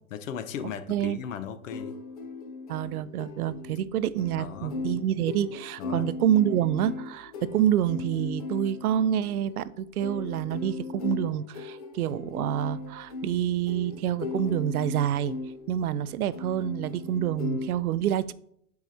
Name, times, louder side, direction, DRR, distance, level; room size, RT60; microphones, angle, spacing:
voice 1, 0.1-1.9 4.4-4.7 5.8-6.1, left 8 dB, 60° left, 0.8 m, -36 dB
voice 2, 0.9-1.2 2.7-15.3 15.7-18.3, right 10 dB, 75° right, 0.6 m, -27 dB
sound 1, 1.7-17.7, left 4 dB, 25° left, 0.4 m, -38 dB
13.0 x 4.7 x 2.7 m
hypercardioid pair, 150°, 45 cm